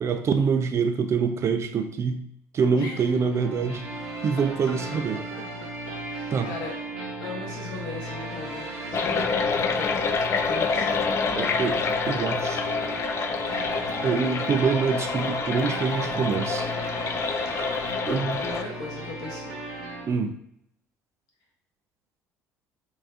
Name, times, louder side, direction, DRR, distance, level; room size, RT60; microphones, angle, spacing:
voice 1, 0.0-2.2 2.5-3.8 4.2-5.2 6.3-6.5 11.3-12.6 14.0-16.7 18.1-18.4 20.1-20.4, right 6 dB, 35° right, 7 dB, 0.4 m, -25 dB
sound 1, 2.6-20.0, right 1 dB, 70° right, 0.8 m, -36 dB
voice 2, 2.8-3.1 4.9-5.0 5.9-6.7 7.2-9.4 9.7-10.1 10.4-10.9 18.4-19.6, left 3 dB, 60° left, -2 dB, 1.1 m, -38 dB
sound 2, 8.9-18.6, left 5 dB, 35° left, 0.4 m, -27 dB
3.2 x 2.6 x 3.6 m, 0.74 s
figure-of-eight pair, 55°, 8 cm